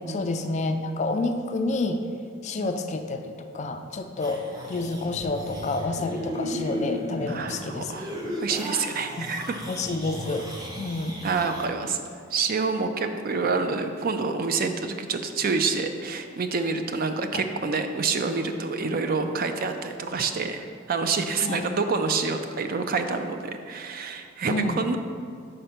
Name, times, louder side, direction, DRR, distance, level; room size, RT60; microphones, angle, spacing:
voice 1, 0.1-2.0 2.4-7.9 9.2-9.3 9.7-10.5 10.8-11.1 17.3-17.4 21.4-21.7 24.5-24.8, left 2 dB, 35° left, 7 dB, 0.3 m, -29 dB
sound 1, 4.2-11.6, equal, 20° right, 0.7 m, -35 dB
voice 2, 7.3-8.1 8.4-9.6 11.2-12.0 12.3-25.0, right 4 dB, 45° right, 7 dB, 0.4 m, -27 dB
5.1 x 4.4 x 5.7 m, 2.3 s
head